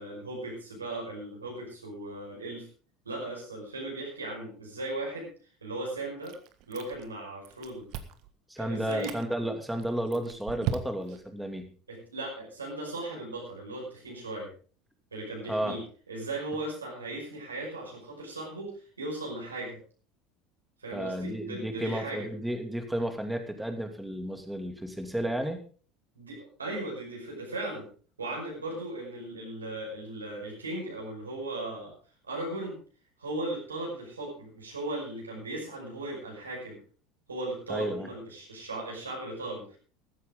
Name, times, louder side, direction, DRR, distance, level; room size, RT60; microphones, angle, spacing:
voice 1, 0.0-2.7 3.1-5.3 5.6-6.3 6.7-7.9 8.6-9.1 11.9-14.5 15.1-15.8 16.1-18.7 19.0-19.8 20.8-22.3 26.2-27.9 28.2-31.9 32.3-32.8 33.2-36.8 37.3-39.8, right 2 dB, 80° right, -2 dB, 5.4 m, -37 dB
Chewing mastication, 6.2-7.2 7.4-8.3 8.8-9.2 9.8-11.2, right 10 dB, 50° right, 1.5 m, -37 dB
voice 2, 8.5-11.7 15.5-15.8 20.9-25.6 37.7-38.1, right 1 dB, 5° right, 6 dB, 2.6 m, -32 dB
14.5 x 14.0 x 3.8 m, 0.39 s
figure-of-eight pair, 70°, 0 cm